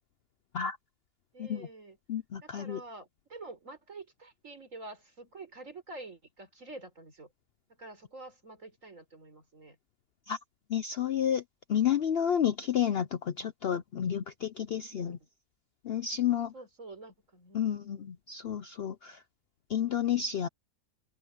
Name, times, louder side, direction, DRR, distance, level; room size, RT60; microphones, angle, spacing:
voice 1, 1.3-2.0 2.4-7.3 7.7-9.8 14.9-15.3 16.5-18.1, right 2 dB, 60° right, 4.9 m, -48 dB
voice 2, 2.1-2.8 10.3-10.4 10.7-11.4 11.7-15.2 15.8-16.5 17.5-19.2 19.7-20.5, left 9 dB, 60° left, 0.7 m, -30 dB
open air
omnidirectional pair, 1.6 m